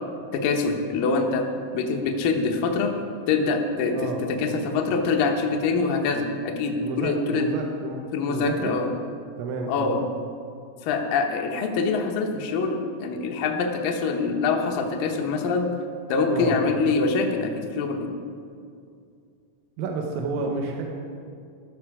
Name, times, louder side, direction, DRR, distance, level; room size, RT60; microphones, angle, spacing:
voice 1, 0.3-1.5 1.7-2.9 3.3-7.5 8.1-8.9 9.7-10.0 10.8-15.7 16.1-18.1 20.4-20.5, left 4 dB, 90° left, 2 dB, 1.9 m, -24 dB
voice 2, 6.8-8.8 9.4-9.9 16.3-16.6 19.8-20.8, right 4 dB, 85° right, 1 dB, 3.7 m, -30 dB
15.0 x 13.0 x 4.8 m, 2.4 s
omnidirectional pair, 5.7 m